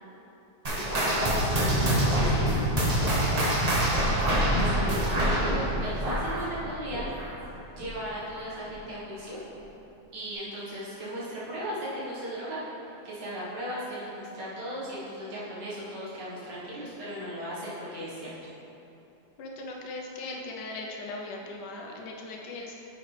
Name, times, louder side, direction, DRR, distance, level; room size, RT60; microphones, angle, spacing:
sound 1, 0.6-7.5 7.8-8.1 8.7-8.8 9.6-9.7, right 1 dB, 30° right, 0.8 m, -25 dB
voice 1, 0.7-2.6 4.6-7.1 7.8-9.4 10.1-12.6 12.8-18.3, equal, 85° right, -9 dB, 2.3 m, -36 dB
voice 2, 3.7-4.3 19.4-22.7, left 2 dB, 75° left, -1 dB, 1.4 m, -39 dB
9.4 x 6.1 x 3.3 m, 2.9 s
omnidirectional pair, 1.8 m